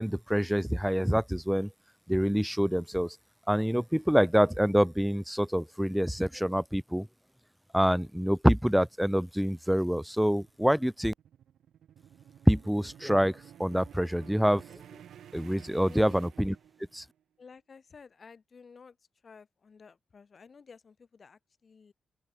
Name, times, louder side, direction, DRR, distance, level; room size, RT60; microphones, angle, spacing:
voice 1, 0.0-1.7 2.1-3.2 3.5-7.1 7.7-11.1 12.5-14.6 15.3-16.6 16.9-17.0, equal, ahead, 0.4 m, -26 dB
sound 1, 10.1-17.1, right 10 dB, 80° right, 4.5 m, -52 dB
voice 2, 17.4-19.0 19.2-21.9, left 5 dB, 35° left, 2.8 m, -53 dB
open air
wide cardioid pair, 145°, 0 cm